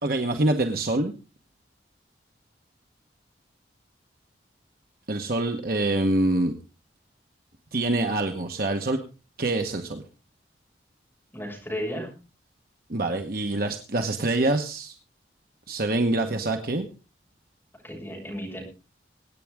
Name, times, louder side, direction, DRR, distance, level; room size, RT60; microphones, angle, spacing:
voice 1, 0.0-1.1 5.1-6.5 7.7-9.0 9.4-10.0 12.9-14.9 15.7-16.9, right 2 dB, 55° right, 5 dB, 1.2 m, -25 dB
voice 2, 11.3-12.1 16.3-16.4 17.8-18.6, equal, 10° left, -2 dB, 7.1 m, -34 dB
23.5 x 9.3 x 3.6 m, 0.32 s
head